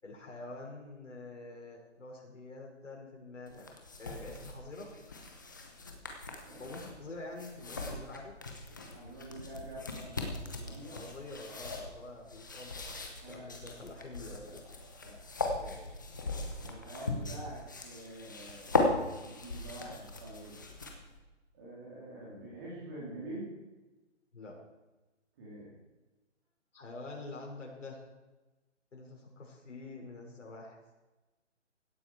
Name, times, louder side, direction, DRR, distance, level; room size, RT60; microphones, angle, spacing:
voice 1, 0.0-3.7 4.0-4.9 6.6-8.3 10.9-14.6 15.6-16.0 24.3-24.6 26.7-28.0 28.9-30.8, left 2 dB, 80° left, 0 dB, 5.3 m, -46 dB
sound 1, 3.5-21.2, left 3 dB, 15° left, 0.9 m, -38 dB
voice 2, 8.9-11.0 13.2-13.7 15.0-15.1 16.6-20.6 21.5-23.5 25.4-25.7, right 1 dB, 15° right, -6 dB, 3.1 m, -46 dB
16.5 x 12.0 x 4.7 m, 1.1 s
hypercardioid pair, 175°, 37 cm